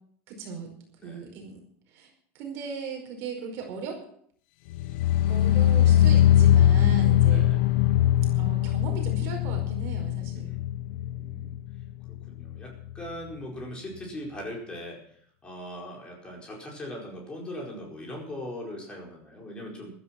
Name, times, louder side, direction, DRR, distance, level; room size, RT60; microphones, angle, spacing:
voice 1, 0.3-0.7 1.0-1.6 1.9-4.0 5.3-7.5 8.3-10.5, right 5 dB, 45° right, 2 dB, 5.0 m, -38 dB
sound 1, 4.7-11.8 12.1-12.6 12.9-13.0, left 12 dB, 70° left, 0.7 m, -21 dB
voice 2, 7.2-7.6 10.3-10.6 10.9-11.6 12.1-15.0 15.4-19.9, left 1 dB, 15° left, -1 dB, 4.8 m, -40 dB
15.5 x 12.5 x 6.0 m, 0.64 s
cardioid pair, 170°, 6 cm